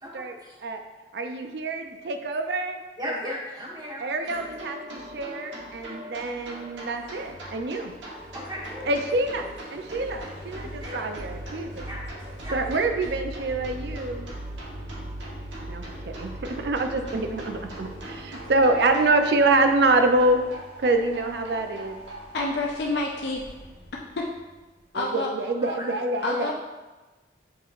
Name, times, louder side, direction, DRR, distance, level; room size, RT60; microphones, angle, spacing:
voice 1, 0.0-0.6 3.0-4.4 8.3-8.9 10.6-11.1 11.9-12.0 12.4-12.5 25.6-25.7, equal, 20° right, -6 dB, 1.1 m, -36 dB
voice 2, 1.1-3.4 4.0-7.9 8.9-11.8 12.5-14.3 15.7-20.4 20.8-22.0 24.9-26.5, right 2 dB, 65° right, 6 dB, 0.4 m, -26 dB
sound 1, 4.2-22.4, right 1 dB, 85° right, 1.0 m, -40 dB
sound 2, 6.9-25.4, left 1 dB, 30° left, 1.2 m, -47 dB
voice 3, 22.3-23.4 24.2-24.3 24.9-25.3 26.2-26.5, left 2 dB, 65° left, -1 dB, 0.5 m, -28 dB
7.1 x 3.0 x 2.5 m, 1.2 s
head